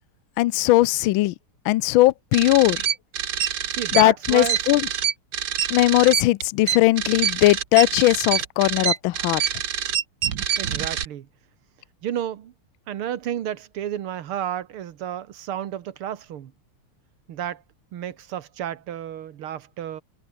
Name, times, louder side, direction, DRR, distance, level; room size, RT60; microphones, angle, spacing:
voice 1, 0.4-1.3 1.7-2.8 4.0-4.8 5.7-9.4, left 18 dB, 75° left, 1.3 m, -19 dB
sound 1, 2.3-11.0, right 9 dB, 60° right, 2.0 m, -26 dB
voice 2, 3.7-4.7 10.6-11.3 12.0-12.5 12.9-16.5 17.3-17.6 17.9-20.0, right 10 dB, 85° right, 2.2 m, -31 dB
omnidirectional pair, 2.3 m